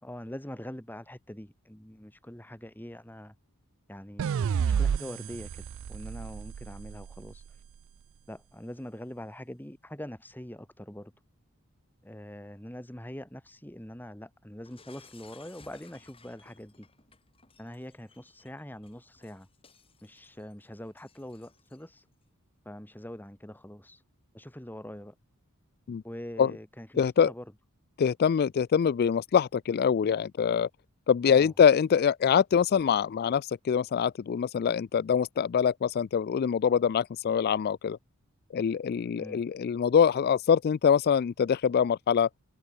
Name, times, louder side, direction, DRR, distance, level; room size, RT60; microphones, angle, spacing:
voice 1, 0.0-3.3 3.9-7.4 8.3-11.1 12.0-16.9 17.6-19.5 20.0-22.1 22.6-24.0 24.3-25.2 26.0-27.5 31.3-31.5 39.2-39.4, equal, 10° left, 2.4 m, -43 dB
sound 1, 4.2-7.4, right 7 dB, 60° right, 0.3 m, -31 dB
Shatter, 14.6-22.0, left 4 dB, 25° left, 6.8 m, -59 dB
voice 2, 27.0-27.3 28.0-30.7 31.1-38.0 38.5-42.3, left 7 dB, 45° left, 0.3 m, -24 dB
head